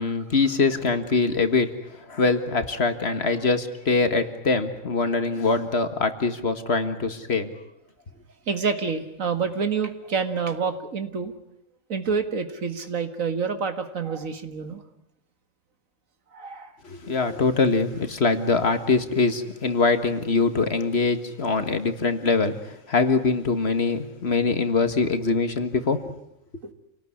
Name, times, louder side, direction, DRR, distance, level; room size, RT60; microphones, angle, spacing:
voice 1, 0.0-1.7 2.1-7.5 16.8-22.5 22.9-26.0, left 4 dB, 50° left, 9 dB, 1.8 m, -23 dB
voice 2, 8.5-11.3 11.9-14.8 16.3-16.7 26.6-26.7, right 5 dB, 80° right, 8 dB, 2.2 m, -28 dB
28.0 x 18.5 x 9.8 m, 0.83 s
omnidirectional pair, 1.4 m